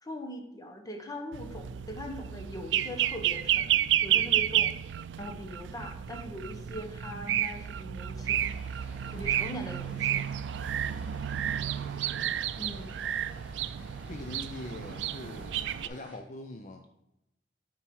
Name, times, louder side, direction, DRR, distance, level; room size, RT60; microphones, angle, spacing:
voice 1, 0.0-4.8 5.2-8.6 9.1-10.3 10.6-10.7 12.6-13.0, equal, 20° left, 4 dB, 1.0 m, -41 dB
sound 1, 1.3-15.9, right 11 dB, 85° right, 0.3 m, -31 dB
Vehicle, 8.2-16.2, equal, 5° right, 1.5 m, -53 dB
voice 2, 12.1-12.6 14.1-16.9, left 2 dB, 45° left, 5 dB, 0.6 m, -43 dB
8.9 x 4.7 x 4.6 m, 0.85 s
head